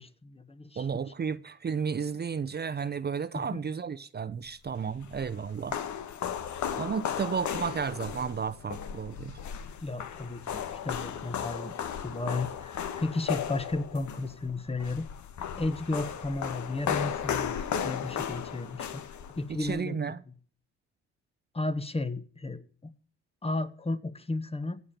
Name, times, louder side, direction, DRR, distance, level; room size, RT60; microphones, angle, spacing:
voice 1, 0.0-0.9 3.3-3.6 9.8-11.7 12.0-15.1 15.6-17.6 17.8-19.0 19.3-19.9 21.5-22.9 23.4-24.8, left 2 dB, 20° left, 1.3 m, -33 dB
voice 2, 0.8-5.8 6.7-9.4 19.5-20.2, right 6 dB, 35° right, 0.8 m, -33 dB
sound 1, 4.7-19.7, left 8 dB, 70° left, 1.5 m, -35 dB
16.5 x 7.5 x 6.8 m
cardioid pair, 90°, 30 cm